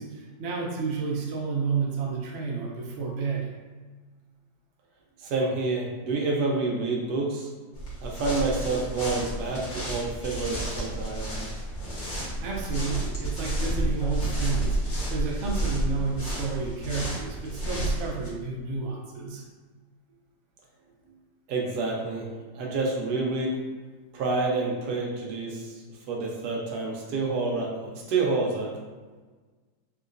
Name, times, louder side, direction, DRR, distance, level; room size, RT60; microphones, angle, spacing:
voice 1, 0.0-3.5 12.4-14.8 15.1-19.4, right 4 dB, 60° right, -2 dB, 0.9 m, -31 dB
voice 2, 5.2-7.5 8.0-11.3 21.5-22.3 22.5-23.6 24.1-27.8 28.1-28.7, right 3 dB, 85° right, -2 dB, 1.2 m, -28 dB
sound 1, 7.7-18.3, right 1 dB, 65° left, 1.6 m, -31 dB
3.6 x 2.9 x 2.5 m, 1.4 s
omnidirectional pair, 1.8 m